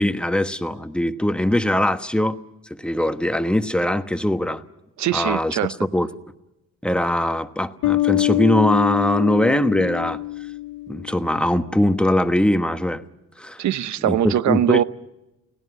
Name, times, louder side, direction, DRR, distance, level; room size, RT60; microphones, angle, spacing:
voice 1, 0.0-2.4 2.7-4.6 5.1-6.1 6.8-10.2 10.9-13.0 13.4-13.6 14.0-14.8, left 1 dB, 5° left, 1.2 m, -21 dB
voice 2, 5.0-5.7 13.6-14.8, right 11 dB, 70° right, 0.9 m, -21 dB
Bass guitar, 7.8-11.3, left 18 dB, 85° left, 0.7 m, -24 dB
30.0 x 17.5 x 6.1 m
cardioid pair, 90°, 30 cm